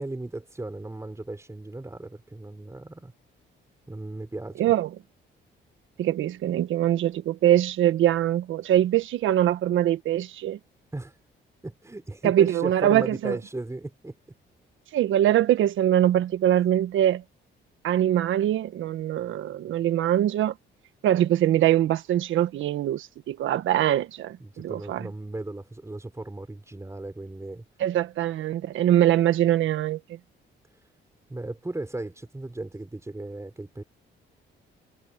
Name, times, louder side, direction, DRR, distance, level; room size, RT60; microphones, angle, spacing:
voice 1, 0.0-3.1 3.9-4.7 10.9-11.2 11.6-14.2 24.4-27.6 30.7-30.9 31.3-33.8, right 2 dB, 15° right, 6.0 m, -36 dB
voice 2, 4.6-4.9 6.0-10.6 12.2-13.4 14.9-17.2 17.8-20.5 21.0-25.1 27.8-30.2, right 12 dB, 80° right, 1.5 m, -23 dB
cardioid pair, 90°, 20 cm